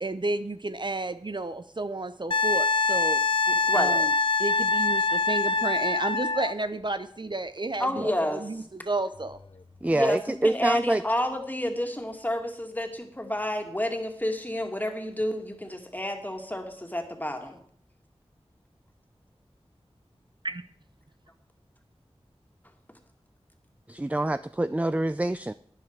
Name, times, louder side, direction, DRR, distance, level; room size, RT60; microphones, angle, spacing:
voice 1, 0.0-3.2 3.7-4.1 4.4-9.4 20.4-20.6, right 2 dB, 45° right, 0.7 m, -32 dB
Wind instrument woodwind instrument, 2.3-6.5 9.2-9.4, left 3 dB, 50° left, 0.6 m, -24 dB
voice 2, 3.5-4.0 7.8-8.4 9.9-17.6, left 1 dB, 15° left, 2.2 m, -30 dB
voice 3, 9.8-11.0 23.9-25.5, right 1 dB, 15° right, 0.4 m, -26 dB
11.5 x 9.9 x 4.7 m
wide cardioid pair, 45°, 11 cm